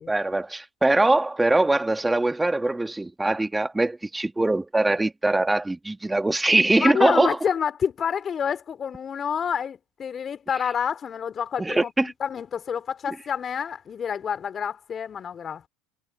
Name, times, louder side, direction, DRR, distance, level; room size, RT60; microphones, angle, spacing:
voice 1, 0.1-7.4 11.6-12.1, right 2 dB, 10° right, 2.1 m, -22 dB
voice 2, 6.8-15.7, left 7 dB, 35° left, 2.8 m, -28 dB
hypercardioid pair, 75°, 0 cm